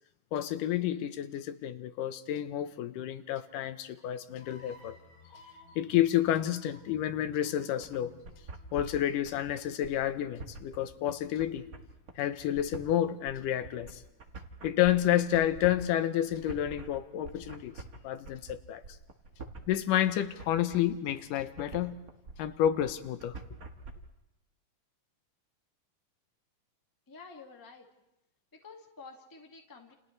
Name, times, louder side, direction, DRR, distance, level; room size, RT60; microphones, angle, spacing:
voice 1, 0.3-5.0 5.8-8.1 8.7-11.6 12.2-14.0 14.6-17.7 18.0-18.8 19.7-21.9 22.4-23.4, left 11 dB, 85° left, 2.4 m, -30 dB
sound 1, 4.4-9.6, left 2 dB, 45° left, 5.2 m, -56 dB
sound 2, 7.8-23.9, right 3 dB, 45° right, 1.2 m, -46 dB
voice 2, 27.1-27.9 28.5-29.9, left 4 dB, 10° left, 1.1 m, -50 dB
29.5 x 29.0 x 3.2 m
omnidirectional pair, 3.7 m